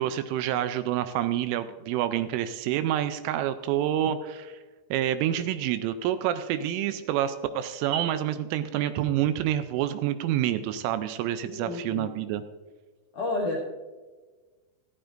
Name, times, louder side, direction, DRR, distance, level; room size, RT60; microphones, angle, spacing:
voice 1, 0.0-4.6 4.9-12.4, right 11 dB, 85° right, 10 dB, 3.0 m, -28 dB
voice 2, 11.6-12.1 13.1-13.6, left 2 dB, 70° left, -3 dB, 1.9 m, -30 dB
15.0 x 14.0 x 2.5 m, 1.3 s
omnidirectional pair, 5.9 m